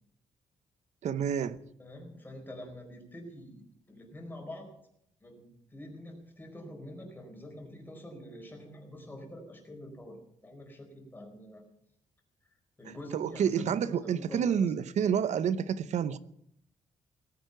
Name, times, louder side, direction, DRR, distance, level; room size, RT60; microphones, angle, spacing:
voice 1, 1.0-1.6 12.8-16.2, right 8 dB, 65° right, 0.7 m, -29 dB
voice 2, 1.8-3.6 3.9-4.7 5.2-11.6 12.8-14.7, left 1 dB, 15° left, 4.4 m, -46 dB
18.0 x 9.4 x 7.9 m
wide cardioid pair, 145°, 13 cm